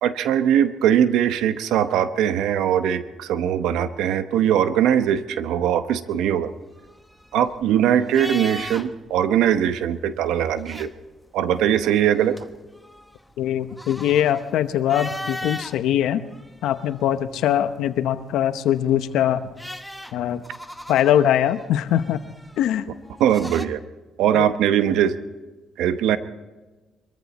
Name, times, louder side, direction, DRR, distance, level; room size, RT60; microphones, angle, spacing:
voice 1, 0.0-6.5 7.3-10.9 11.3-12.4 23.2-23.8 24.2-25.1 25.8-26.2, right 10 dB, 90° right, 12 dB, 0.8 m, -21 dB
sound 1, 6.6-9.1 9.4-9.6 10.4-11.3 11.8-15.8 16.3-17.3 18.8-23.7, left 1 dB, 5° left, 1.0 m, -38 dB
voice 2, 13.4-16.2 16.6-19.5 20.1-20.4 20.9-22.2 22.6-22.8 24.3-24.5, left 11 dB, 85° left, 11 dB, 0.9 m, -22 dB
23.5 x 14.5 x 4.2 m, 1.2 s
cardioid pair, 90°, 0 cm